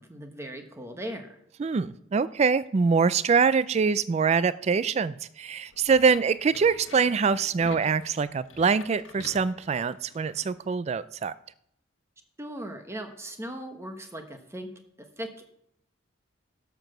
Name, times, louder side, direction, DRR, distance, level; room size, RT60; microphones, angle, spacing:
voice 1, 0.0-1.4 12.4-14.7 15.2-15.3, right 1 dB, 15° right, 6 dB, 1.1 m, -38 dB
voice 2, 1.6-11.3, right 5 dB, 35° right, 16 dB, 0.3 m, -24 dB
sound 1, 5.7-10.5, left 4 dB, 85° left, 1.2 m, -48 dB
12.0 x 6.0 x 6.7 m, 0.74 s
head